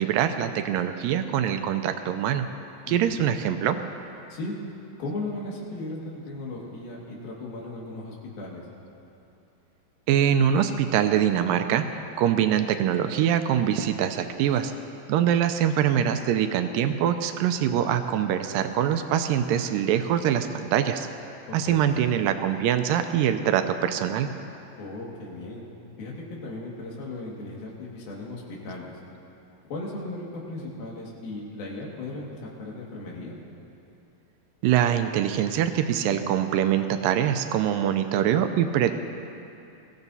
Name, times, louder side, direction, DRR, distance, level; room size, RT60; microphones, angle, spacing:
voice 1, 0.0-2.4 2.9-3.8 10.1-11.8 12.2-14.7 15.1-21.1 21.5-24.3 34.6-38.9, right 9 dB, 80° right, 8 dB, 2.2 m, -24 dB
voice 2, 2.9-3.2 4.3-4.5 5.0-8.7 21.5-21.9 24.8-25.6 26.0-29.0 29.7-33.4, left 2 dB, 85° left, -3 dB, 3.8 m, -36 dB
21.5 x 15.5 x 2.7 m, 2.8 s
omnidirectional pair, 4.1 m